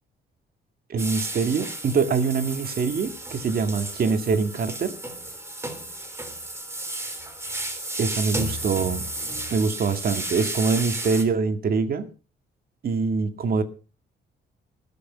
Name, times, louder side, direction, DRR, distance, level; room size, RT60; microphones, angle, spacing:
voice 1, 0.9-4.9 8.0-9.1 9.5-12.1 12.8-13.6, right 5 dB, 50° right, 2.1 m, -24 dB
sound 1, 1.0-11.2, right 1 dB, 15° right, 3.1 m, -33 dB
20.0 x 6.8 x 5.7 m
cardioid pair, 130°, 20 cm